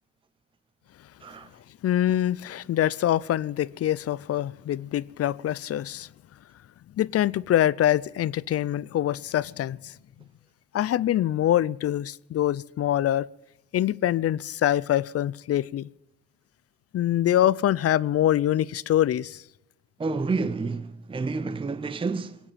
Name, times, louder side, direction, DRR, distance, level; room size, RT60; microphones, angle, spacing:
voice 1, 1.8-6.1 7.0-9.9 10.7-13.3 13.7-15.9 16.9-19.4, left 12 dB, 55° left, 0.5 m, -24 dB
voice 2, 20.0-22.4, right 4 dB, 15° right, 0.6 m, -29 dB
20.0 x 8.7 x 7.4 m
cardioid pair, 90°, 30 cm